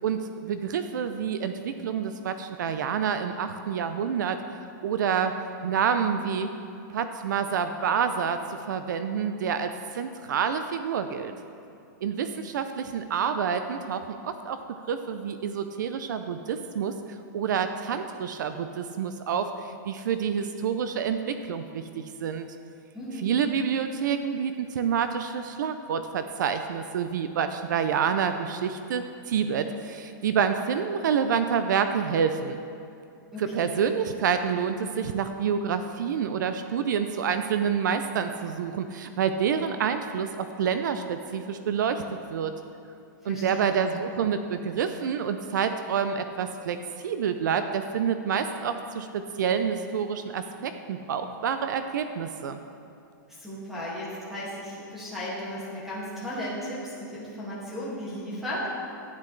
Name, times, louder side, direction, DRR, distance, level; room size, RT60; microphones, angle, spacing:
voice 1, 0.0-4.4 4.8-5.3 5.6-6.5 6.9-11.3 12.0-14.6 14.9-16.9 17.3-22.6 23.2-32.6 33.4-42.0 42.3-42.5 43.2-52.6, right 7 dB, 65° right, 9 dB, 0.5 m, -28 dB
voice 2, 22.9-23.3 33.3-33.7 43.2-43.8 53.3-58.7, equal, 5° right, -8 dB, 2.0 m, -35 dB
11.5 x 9.7 x 3.2 m, 2.6 s
supercardioid pair, 175°, 11 cm